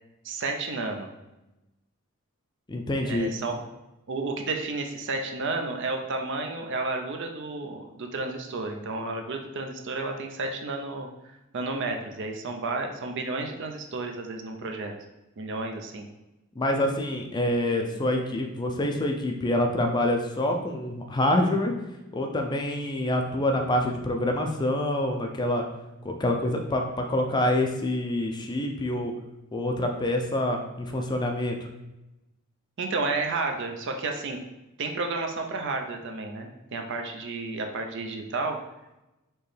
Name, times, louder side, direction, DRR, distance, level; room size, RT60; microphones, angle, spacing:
voice 1, 0.2-1.1 3.0-3.6 4.1-11.1 11.5-14.9 15.4-16.1 32.8-34.4 34.8-38.6, right 3 dB, 55° right, 3 dB, 0.5 m, -31 dB
voice 2, 2.7-3.3 16.6-21.7 22.1-25.6 26.0-29.1 29.5-31.6, left 1 dB, 20° left, 3 dB, 0.4 m, -26 dB
4.5 x 3.1 x 3.2 m, 0.98 s
head